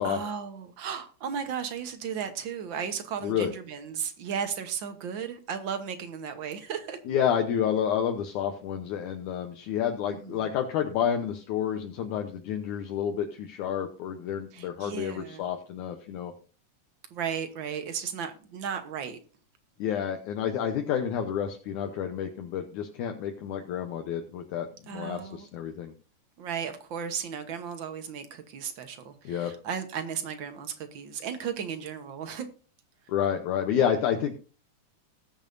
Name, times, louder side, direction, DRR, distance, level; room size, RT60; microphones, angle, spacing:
voice 1, 0.0-7.0 10.0-10.5 14.5-15.5 17.1-19.2 24.9-25.5 26.4-32.5, right 7 dB, 70° right, 1.1 m, -35 dB
voice 2, 7.1-16.3 19.8-25.9 29.3-29.5 33.1-34.3, left 8 dB, 75° left, 2.3 m, -29 dB
20.5 x 7.2 x 2.6 m
omnidirectional pair, 3.7 m